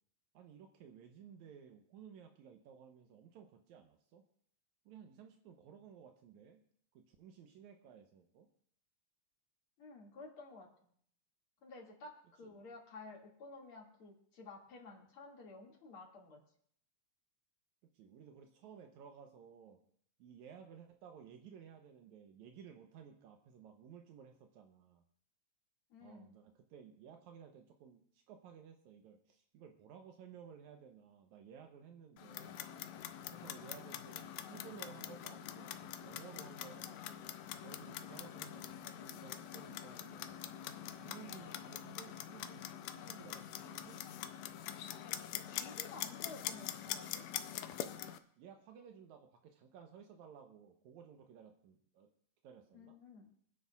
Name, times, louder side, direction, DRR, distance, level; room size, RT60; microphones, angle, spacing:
voice 1, 0.3-4.2 4.9-6.6 6.9-8.5 12.4-12.5 17.9-19.8 20.2-25.0 26.0-32.6 33.3-37.3 37.6-40.4 40.9-42.6 42.9-44.0 48.4-52.1 52.4-53.0, right 7 dB, 85° right, 4 dB, 2.2 m, -56 dB
voice 2, 9.8-10.7 11.6-16.4 25.9-26.3 45.6-47.2 52.7-53.3, left 3 dB, 50° left, -2 dB, 2.9 m, -53 dB
Clock, 32.2-48.2, left 11 dB, 75° left, 1.9 m, -45 dB
28.5 x 9.8 x 2.4 m, 0.64 s
omnidirectional pair, 3.3 m